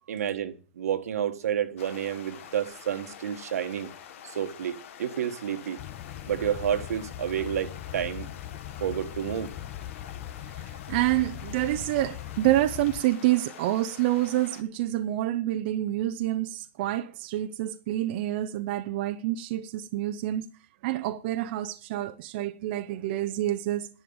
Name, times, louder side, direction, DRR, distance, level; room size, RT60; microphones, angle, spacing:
voice 1, 0.1-3.9 4.2-5.8 6.3-8.3 8.8-9.5, right 9 dB, 80° right, 1.5 m, -30 dB
sound 1, 1.8-14.6, left 9 dB, 55° left, 1.7 m, -47 dB
sound 2, 5.8-13.0, left 12 dB, 30° left, 0.5 m, -40 dB
voice 2, 10.6-20.5 20.8-23.9, right 14 dB, 40° right, 0.7 m, -28 dB
11.0 x 6.6 x 8.8 m
hypercardioid pair, 160°, 8 cm